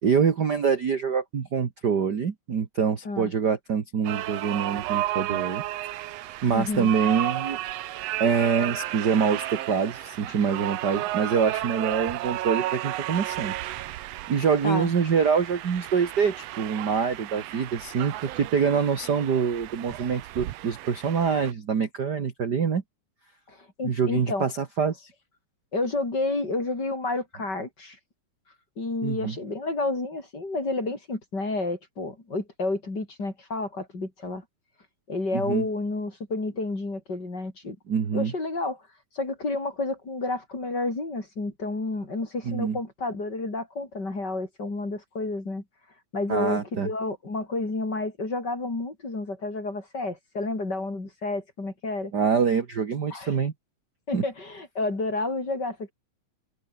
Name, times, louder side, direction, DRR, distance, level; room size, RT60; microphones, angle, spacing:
voice 1, 0.0-5.6 6.4-7.6 8.2-13.5 14.3-22.8 23.8-25.1 29.0-29.3 35.3-35.7 37.9-38.3 42.5-42.8 46.3-46.9 52.1-53.5 54.1-54.2, right 6 dB, 40° right, 1.8 m, -25 dB
sound 1, 4.0-21.5, right 15 dB, 75° right, 1.6 m, -33 dB
voice 2, 6.5-6.9 14.6-14.9 23.5-24.5 25.7-28.0 28.8-34.4 35.1-37.8 38.1-38.8 39.1-45.6 46.1-52.1 53.1-53.3 54.1-55.9, left 2 dB, 30° left, 5.5 m, -30 dB
omnidirectional pair, 3.6 m